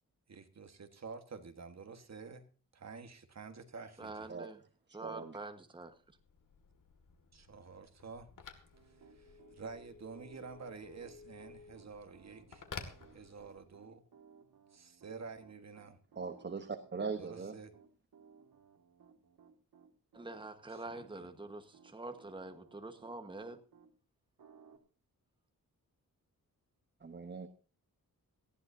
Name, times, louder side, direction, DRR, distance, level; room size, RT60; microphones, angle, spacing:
voice 1, 0.3-2.4 2.7-4.3 7.3-8.3 8.8-12.7 13.1-14.0 14.7-16.0 17.2-17.7 20.7-21.3, right 5 dB, 50° right, 9 dB, 1.5 m, -49 dB
voice 2, 4.0-4.6 4.9-6.0 20.1-23.6, right 2 dB, 15° right, 7 dB, 1.3 m, -45 dB
voice 3, 5.0-5.4 16.2-17.6 27.0-27.5, right 4 dB, 30° right, 9 dB, 1.0 m, -40 dB
Telephone, 5.9-13.8, left 5 dB, 65° left, 2.2 m, -53 dB
Piano, 8.7-23.9 24.4-24.8, right 6 dB, 85° right, 2.1 m, -62 dB
18.5 x 15.0 x 2.7 m, 0.36 s
wide cardioid pair, 155°, 35 cm